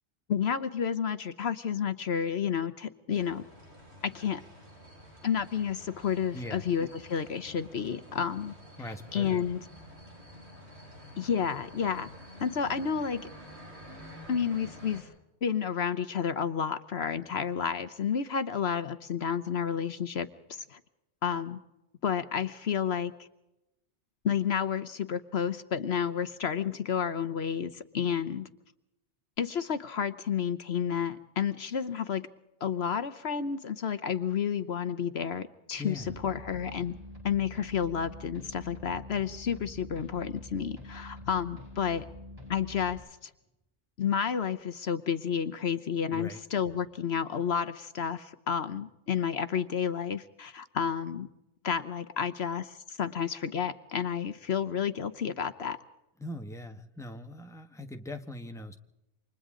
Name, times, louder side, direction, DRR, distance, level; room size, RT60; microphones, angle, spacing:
voice 1, 0.3-3.4 4.0-4.4 5.2-8.5 9.1-9.6 11.2-12.1 12.4-13.2 14.3-15.1 15.4-20.8 21.2-21.6 22.0-23.1 24.2-28.5 29.4-32.3 32.6-36.9 37.2-42.1 42.5-43.3 44.0-51.3 51.6-55.8, left 7 dB, 65° left, 11 dB, 1.1 m, -31 dB
sound 1, 3.1-15.0, equal, 65° right, 6.3 m, -49 dB
voice 2, 6.3-6.7 8.8-9.4 35.8-36.2 46.1-46.4 56.2-58.8, left 1 dB, 5° left, 6 dB, 1.3 m, -41 dB
sound 2, 35.9-42.9, left 1 dB, 30° right, 6.5 m, -46 dB
29.0 x 25.5 x 3.8 m, 0.93 s
omnidirectional pair, 1.2 m